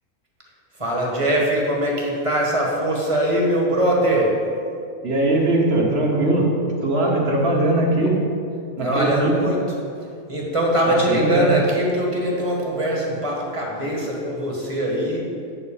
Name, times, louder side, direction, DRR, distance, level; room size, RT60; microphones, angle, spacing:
voice 1, 0.7-4.4 8.8-9.6 10.3-15.3, right 1 dB, 20° right, -3 dB, 1.4 m, -22 dB
voice 2, 5.0-6.5 6.8-8.2 8.8-9.4 10.9-11.5, right 2 dB, 45° right, -1 dB, 1.2 m, -20 dB
8.6 x 4.0 x 7.1 m, 2.4 s
omnidirectional pair, 1.6 m